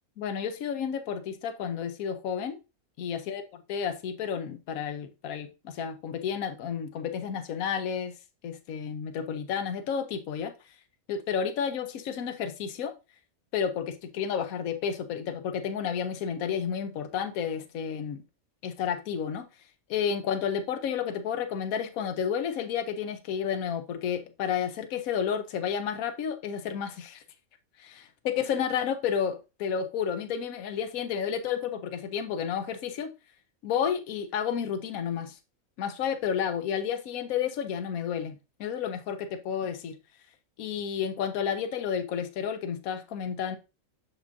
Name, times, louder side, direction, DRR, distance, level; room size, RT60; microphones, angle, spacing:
voice 1, 0.2-2.6 3.0-3.4 3.7-8.1 8.4-10.5 11.1-12.9 13.5-18.2 18.6-19.5 19.9-27.2 27.8-33.1 33.6-35.4 35.8-40.0 40.6-43.6, left 7 dB, 80° left, 1.2 m, -31 dB
6.7 x 6.0 x 2.6 m
omnidirectional pair, 1.5 m